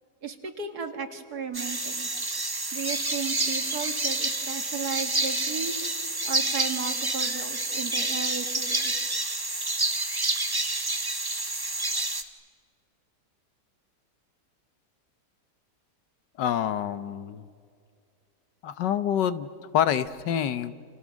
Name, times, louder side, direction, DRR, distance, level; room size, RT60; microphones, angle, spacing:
voice 1, 0.2-2.1 2.7-5.7 6.2-8.9, right 6 dB, 65° right, 7 dB, 2.3 m, -35 dB
sound 1, 1.5-12.2, right 2 dB, 15° right, 1.0 m, -28 dB
voice 2, 16.4-17.5 18.6-19.5 19.7-20.7, left 9 dB, 90° left, 13 dB, 1.6 m, -26 dB
30.0 x 28.5 x 6.3 m, 2.2 s
omnidirectional pair, 1.8 m